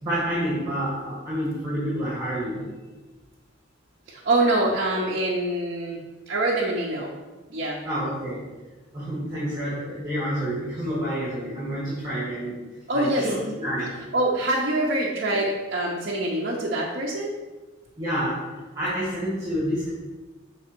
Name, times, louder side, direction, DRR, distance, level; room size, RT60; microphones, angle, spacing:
voice 1, 0.0-2.7 7.8-8.4 8.9-12.6 12.9-13.9 18.0-18.5 18.7-19.9, equal, 15° right, -9 dB, 2.1 m, -28 dB
voice 2, 4.1-6.0 6.3-7.1 7.5-7.8 12.9-13.2 14.1-17.3, right 1 dB, 50° right, -5 dB, 0.8 m, -25 dB
6.1 x 4.1 x 4.5 m, 1.2 s
head